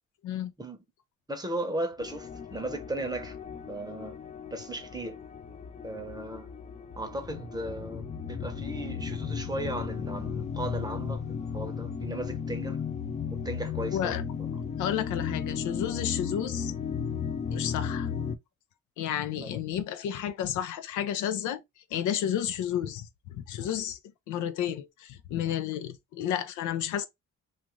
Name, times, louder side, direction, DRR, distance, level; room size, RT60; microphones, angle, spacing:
voice 1, 1.3-3.4 3.7-4.2 4.5-5.2 5.8-6.5 7.0-12.8 13.3-14.2 19.4-19.6, right 1 dB, 15° right, 0.7 m, -36 dB
sound 1, 2.0-18.4, left 7 dB, 25° left, 0.3 m, -35 dB
voice 2, 13.9-14.2 14.8-16.7 17.5-18.1 19.0-21.6 21.9-24.0 24.3-27.1, left 10 dB, 80° left, 0.5 m, -31 dB
2.5 x 2.4 x 3.0 m
cardioid pair, 90°, 30 cm